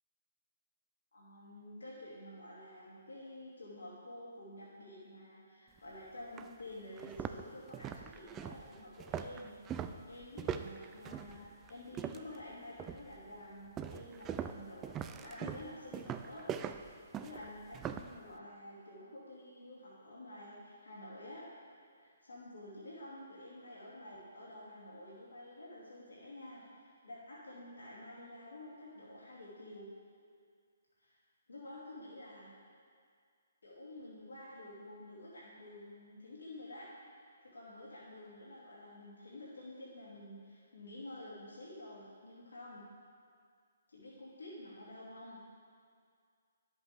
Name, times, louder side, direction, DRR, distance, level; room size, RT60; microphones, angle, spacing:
voice 1, 1.1-16.4 17.2-21.4 22.0-29.9 31.0-31.2 31.5-32.5 33.6-36.9 37.5-42.8 43.9-45.4, left 1 dB, 90° left, -7 dB, 2.7 m, -50 dB
sound 1, 5.8-5.9 6.4-6.5 6.9-12.4 12.8-13.2 13.8-18.1, right 8 dB, 20° right, 0.3 m, -41 dB
11.0 x 7.9 x 3.5 m, 2.1 s
hypercardioid pair, 145°, 0 cm